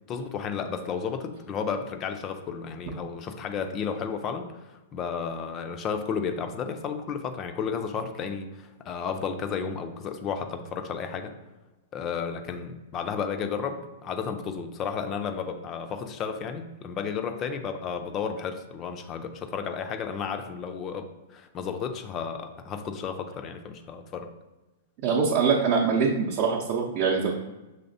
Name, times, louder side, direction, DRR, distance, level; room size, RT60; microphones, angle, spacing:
voice 1, 0.1-11.3 11.9-21.1 21.3-24.3, left 6 dB, 30° left, 7 dB, 0.4 m, -33 dB
voice 2, 25.0-27.3, right 5 dB, 45° right, -2 dB, 0.6 m, -23 dB
5.7 x 3.1 x 2.6 m, 1.1 s
figure-of-eight pair, 105°, 0 cm